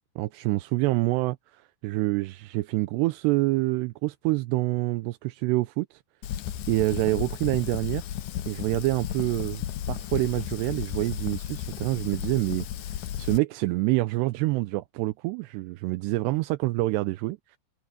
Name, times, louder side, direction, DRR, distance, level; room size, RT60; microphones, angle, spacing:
voice 1, 0.2-6.0 6.7-8.0 8.5-17.6, right 20 dB, 80° right, 2.7 m, -27 dB
Fire, 6.2-13.4, left 11 dB, 75° left, 1.8 m, -34 dB
omnidirectional pair, 5.0 m